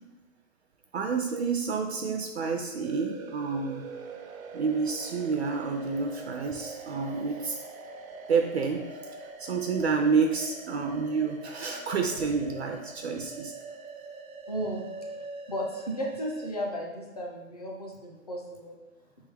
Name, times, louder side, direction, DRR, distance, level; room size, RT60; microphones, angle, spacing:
voice 1, 0.9-3.8 4.5-7.6 8.3-9.0 9.4-13.5, right 5 dB, 55° right, 3 dB, 0.5 m, -29 dB
sound 1, 2.8-16.5, right 3 dB, 80° right, 0.8 m, -43 dB
voice 2, 14.5-14.8 15.5-18.8, equal, 30° left, -1 dB, 0.4 m, -34 dB
4.3 x 3.6 x 3.3 m, 1.1 s
hypercardioid pair, 175°, 41 cm